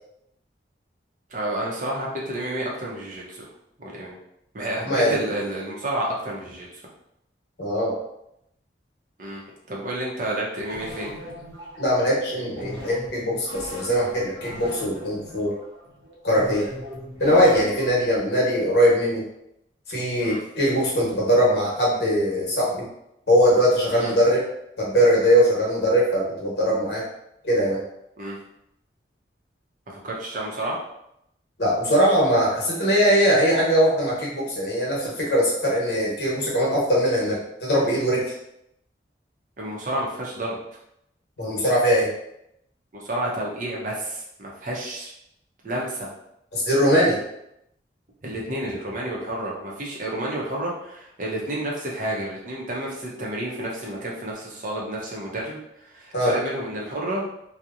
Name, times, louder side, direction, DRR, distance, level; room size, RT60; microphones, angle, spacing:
voice 1, 1.3-3.5 3.8-4.2 4.5-6.8 9.2-11.1 20.2-20.4 23.9-24.1 28.2-28.4 29.9-30.8 39.6-40.6 42.9-45.1 45.6-46.1 48.2-57.3, right 1 dB, 45° right, -3 dB, 0.6 m, -30 dB
voice 2, 4.8-5.2 7.6-7.9 11.8-15.6 16.2-16.7 17.2-19.2 19.9-22.9 23.3-24.4 24.8-27.0 27.4-27.8 31.6-38.3 41.4-42.1 46.5-47.2 56.1-56.3, equal, 65° left, -5 dB, 0.9 m, -21 dB
sound 1, 10.7-18.2, equal, 85° right, 0.7 m, -40 dB
2.8 x 2.0 x 2.4 m, 0.80 s
head